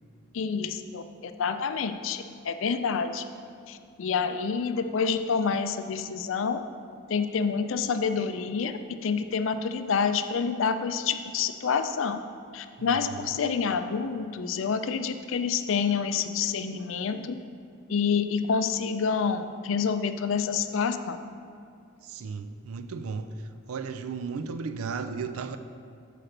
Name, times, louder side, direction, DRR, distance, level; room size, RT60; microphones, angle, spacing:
voice 1, 0.3-3.2 3.7-6.6 7.1-8.7 9.0-12.2 12.5-17.4 17.9-21.2, left 6 dB, 65° left, 9 dB, 0.4 m, -28 dB
voice 2, 12.8-13.4 22.0-23.3 23.7-25.6, right 5 dB, 85° right, 9 dB, 0.4 m, -35 dB
5.8 x 5.0 x 6.5 m, 2.4 s
head